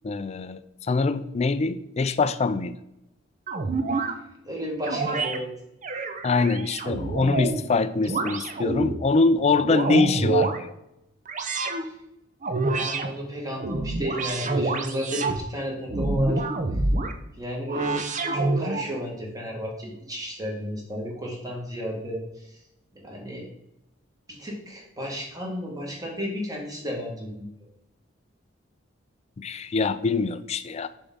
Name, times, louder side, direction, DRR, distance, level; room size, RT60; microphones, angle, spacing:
voice 1, 0.0-0.6 0.9-2.7 6.2-10.7 29.4-30.9, left 3 dB, 35° left, 12 dB, 0.4 m, -24 dB
sound 1, 3.5-4.1 4.9-5.4 5.8-7.6 8.0-8.9 9.4-10.6 11.3-11.8 12.4-13.1 13.5-15.4 15.9-17.1 17.7-18.9, right 3 dB, 40° right, 0.6 m, -27 dB
voice 2, 4.4-5.5 12.6-16.4 17.4-18.0 18.3-22.5 22.9-23.5 24.3-27.5, equal, 20° right, -2 dB, 1.8 m, -33 dB
6.8 x 3.6 x 5.5 m, 0.86 s
head